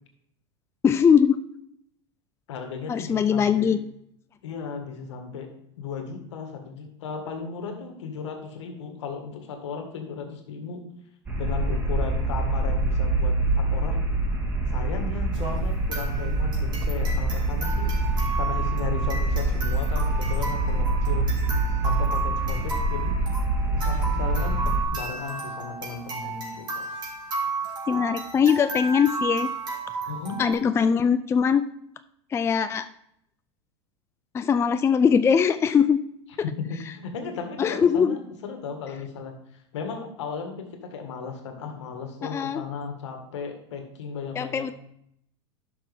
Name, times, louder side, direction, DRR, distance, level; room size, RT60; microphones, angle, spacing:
voice 1, 0.8-1.4 2.9-3.8 27.9-29.5 30.4-31.6 32.3-32.9 34.3-36.0 37.6-38.2 42.2-42.6 44.4-44.7, left 7 dB, 15° left, 11 dB, 0.4 m, -21 dB
voice 2, 2.5-3.8 4.4-5.5 5.8-10.8 11.4-14.0 14.7-18.0 18.3-21.3 21.8-23.2 23.7-26.9 30.1-30.4 36.4-44.7, left 5 dB, 75° left, 4 dB, 1.9 m, -36 dB
sound 1, 11.3-24.8, right 2 dB, 15° right, 1.9 m, -25 dB
sound 2, 15.3-30.5, right 4 dB, 30° right, 3.7 m, -33 dB
10.5 x 6.0 x 3.6 m, 0.73 s
hypercardioid pair, 105°, 15 cm